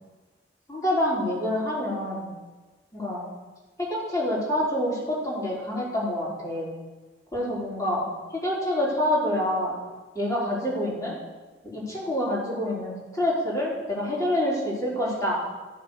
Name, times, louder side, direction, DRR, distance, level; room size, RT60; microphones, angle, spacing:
voice 1, 0.7-2.3 2.9-3.2 3.8-6.7 7.3-8.0 8.3-9.8 10.1-11.2 11.6-15.4, left 1 dB, 20° left, -6 dB, 4.4 m, -27 dB
13.5 x 7.2 x 6.8 m, 1.3 s
head